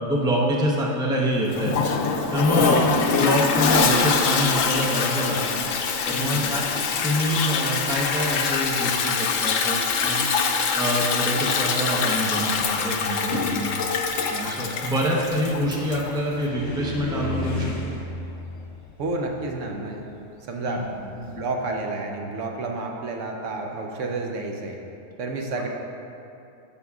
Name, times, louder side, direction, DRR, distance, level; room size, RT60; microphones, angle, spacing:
voice 1, 0.0-1.7 2.3-2.9 3.2-5.6 6.1-6.6 7.0-10.3 10.8-13.6 14.3-17.7 20.6-20.8, equal, 5° right, -3 dB, 0.7 m, -25 dB
Toilet flush, 1.5-16.1, left 5 dB, 90° left, 1.0 m, -24 dB
voice 2, 2.5-2.9 6.2-6.5 13.3-13.7 19.0-20.0 20.5-24.8 25.2-25.7, right 2 dB, 75° right, 1 dB, 1.1 m, -30 dB
Car, 13.1-21.4, left 1 dB, 70° left, 1.3 m, -36 dB
14.0 x 5.5 x 2.4 m, 2.7 s
omnidirectional pair, 1.3 m